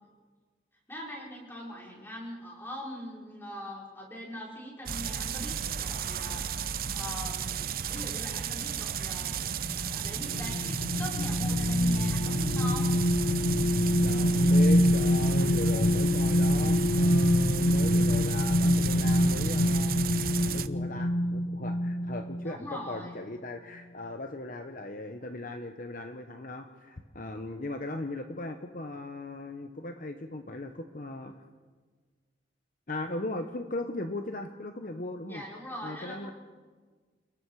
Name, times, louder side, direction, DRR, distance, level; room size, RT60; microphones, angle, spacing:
voice 1, 0.9-9.5 9.9-12.9 22.4-23.2 35.3-36.3, equal, 10° left, -3 dB, 5.0 m, -42 dB
sound 1, 4.9-20.7, right 7 dB, 50° right, 0.7 m, -34 dB
sound 2, 9.6-22.5 22.9-23.1, left 1 dB, 90° left, 1.2 m, -25 dB
voice 2, 14.0-20.2 20.5-31.3 32.9-35.4 35.8-36.3, left 2 dB, 45° left, 6 dB, 1.1 m, -38 dB
29.5 x 18.5 x 4.9 m, 1.5 s
head